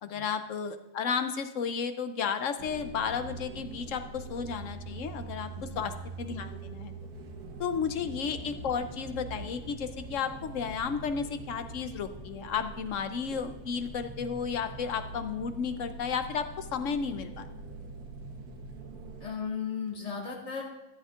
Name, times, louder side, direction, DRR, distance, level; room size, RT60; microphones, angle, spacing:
voice 1, 0.0-6.9 7.6-17.5, left 6 dB, 65° left, 9 dB, 0.9 m, -33 dB
sound 1, 2.6-19.3, right 3 dB, 85° right, 1.6 m, -43 dB
voice 2, 5.5-5.9 19.2-20.6, left 6 dB, 45° left, -2 dB, 2.3 m, -36 dB
13.0 x 10.5 x 2.4 m, 1.0 s
omnidirectional pair, 1.7 m